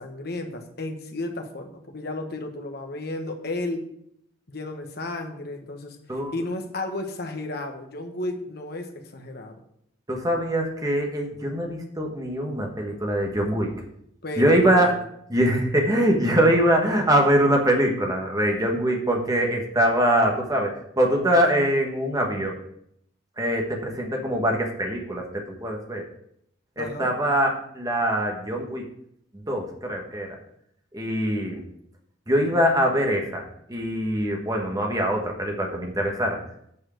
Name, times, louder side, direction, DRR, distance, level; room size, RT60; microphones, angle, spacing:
voice 1, 0.0-3.9 4.5-9.6 14.2-15.1 26.8-27.1, left 2 dB, 50° left, 4 dB, 1.2 m, -33 dB
voice 2, 10.1-13.8 14.4-15.0 15.3-22.5 23.4-26.0 26.8-28.8 29.3-30.3 30.9-31.6 32.3-36.4, right 1 dB, 20° right, 1 dB, 1.4 m, -23 dB
8.6 x 4.8 x 6.3 m, 0.72 s
head